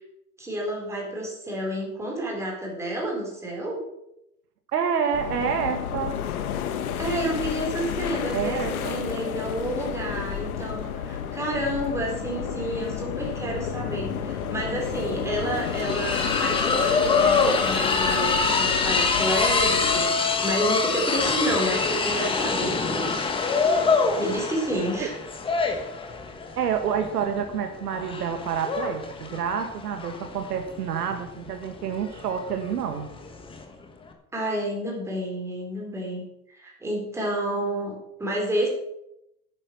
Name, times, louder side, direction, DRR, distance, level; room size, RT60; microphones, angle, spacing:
voice 1, 0.4-3.8 7.0-8.6 8.9-23.3 24.2-25.1 34.3-38.7, right 1 dB, 5° right, -2 dB, 4.0 m, -30 dB
voice 2, 4.7-6.2 8.3-9.0 25.0-25.1 26.6-33.1, right 7 dB, 90° right, 6 dB, 1.9 m, -28 dB
sound 1, 5.1-20.0, left 8 dB, 65° left, 1.8 m, -31 dB
sound 2, 14.4-14.5 14.8-33.6, left 4 dB, 10° left, 1.3 m, -25 dB
9.9 x 9.9 x 6.2 m, 0.82 s
supercardioid pair, 145°, 46 cm